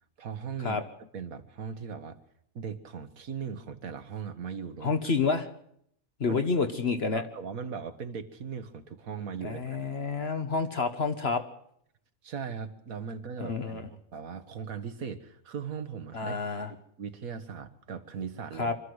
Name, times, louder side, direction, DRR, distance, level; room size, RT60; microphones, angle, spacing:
voice 1, 0.2-0.8 1.1-2.2 2.5-4.9 6.3-6.4 7.1-9.9 12.2-16.4 16.7-18.7, right 6 dB, 80° right, 9 dB, 1.7 m, -39 dB
voice 2, 4.8-5.5 6.2-7.2 9.4-11.4 13.4-13.9 16.1-16.7 18.6-18.7, left 4 dB, 50° left, 8 dB, 1.4 m, -29 dB
25.0 x 13.0 x 7.9 m, 0.70 s
omnidirectional pair, 1.4 m